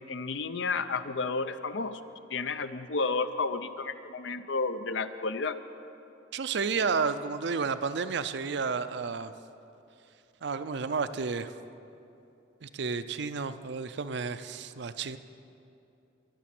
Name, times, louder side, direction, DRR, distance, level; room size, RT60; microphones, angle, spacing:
voice 1, 0.0-2.0 2.3-5.6, left 4 dB, 70° left, 11 dB, 0.6 m, -31 dB
voice 2, 6.3-9.3 10.4-11.5 12.6-15.2, right 5 dB, 60° right, 11 dB, 0.5 m, -31 dB
22.0 x 7.4 x 6.0 m, 2.8 s
head